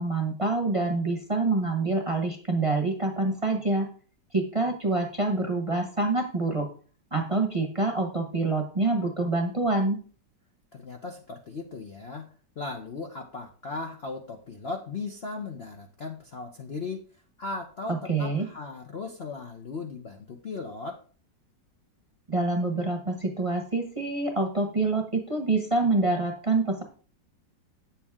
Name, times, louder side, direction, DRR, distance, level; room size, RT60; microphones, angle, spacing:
voice 1, 0.0-3.9 4.3-6.7 7.1-10.0 17.9-18.5 22.3-26.8, right 3 dB, 20° right, 4 dB, 1.0 m, -26 dB
voice 2, 10.7-17.0 17.4-21.0, left 3 dB, 50° left, 2 dB, 0.8 m, -37 dB
8.6 x 7.2 x 3.6 m, 0.40 s
omnidirectional pair, 1.9 m